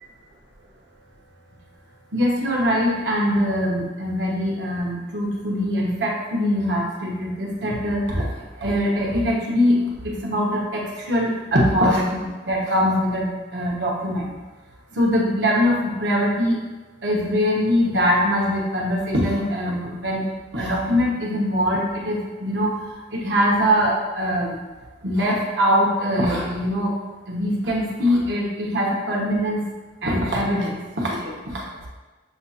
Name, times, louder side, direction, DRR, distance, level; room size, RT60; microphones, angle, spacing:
voice 1, 2.1-8.3 8.6-9.8 10.0-14.3 14.9-16.6 17.0-20.2 20.5-22.8 23.1-24.5 25.0-26.9 27.3-29.6 30.0-31.9, equal, 90° right, -3 dB, 1.0 m, -22 dB
7.0 x 2.4 x 2.8 m, 1.2 s
head